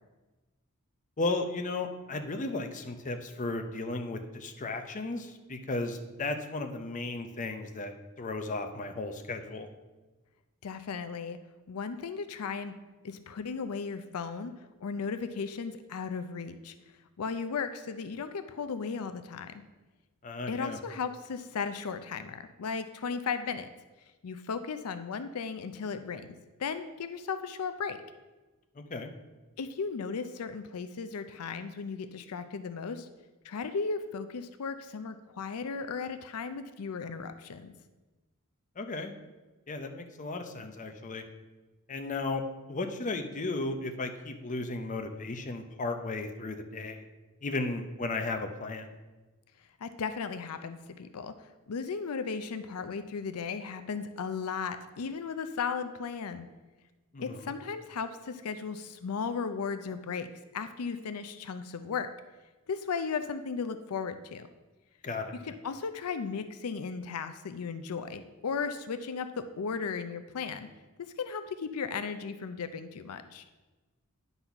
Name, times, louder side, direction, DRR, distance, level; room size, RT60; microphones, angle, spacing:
voice 1, 1.2-9.7 20.2-20.8 28.8-29.1 38.8-39.1 39.7-41.2 41.9-42.4 42.7-47.0 47.4-48.9 57.1-57.5 65.0-65.3, left 2 dB, 35° left, 6 dB, 0.6 m, -35 dB
voice 2, 10.6-11.4 11.7-12.7 13.0-14.5 14.8-16.7 17.2-19.6 20.5-23.7 24.2-28.0 29.6-33.1 33.4-37.7 49.8-56.5 57.2-60.3 60.5-62.1 62.7-64.5 65.4-70.7 71.0-73.4, left 5 dB, 80° left, 10 dB, 0.5 m, -36 dB
9.9 x 4.1 x 5.7 m, 1.2 s
head